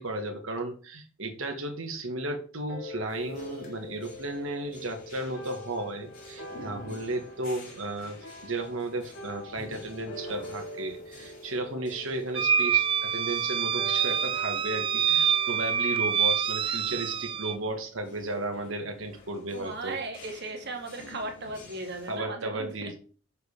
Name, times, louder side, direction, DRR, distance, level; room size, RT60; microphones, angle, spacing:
voice 1, 0.0-20.0 22.1-22.9, right 2 dB, 75° right, 4 dB, 1.8 m, -34 dB
sound 1, 2.7-17.4, equal, 80° left, 3.3 m, -45 dB
sound 2, 3.1-22.2, left 2 dB, 45° left, 3.8 m, -51 dB
sound 3, 12.3-17.5, right 7 dB, 25° right, 0.3 m, -26 dB
voice 2, 19.5-22.9, right 2 dB, 55° right, 4 dB, 2.1 m, -37 dB
6.6 x 5.3 x 6.7 m, 0.39 s
head